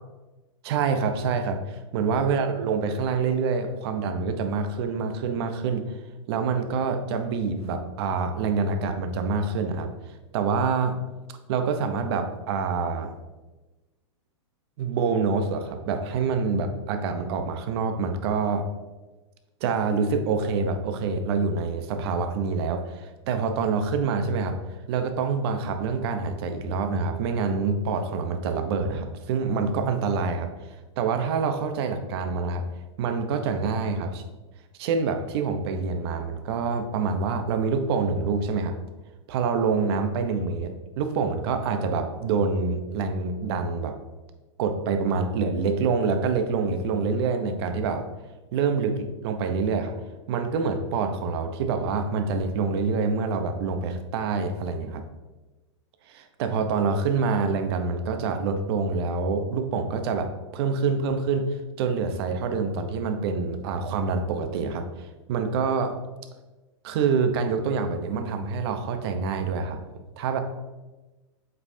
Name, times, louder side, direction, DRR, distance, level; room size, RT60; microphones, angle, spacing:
voice 1, 0.6-5.8 6.3-9.9 10.3-10.9 11.5-13.1 14.8-18.6 19.6-24.6 24.9-30.5 31.0-32.6 33.0-34.2 34.8-38.8 39.3-43.9 44.6-48.1 48.5-49.9 50.3-55.0 56.1-65.9 66.8-69.8 70.2-70.4, right 5 dB, 55° right, 7 dB, 0.9 m, -26 dB
7.8 x 5.5 x 2.7 m, 1.2 s
hypercardioid pair, 130°, 16 cm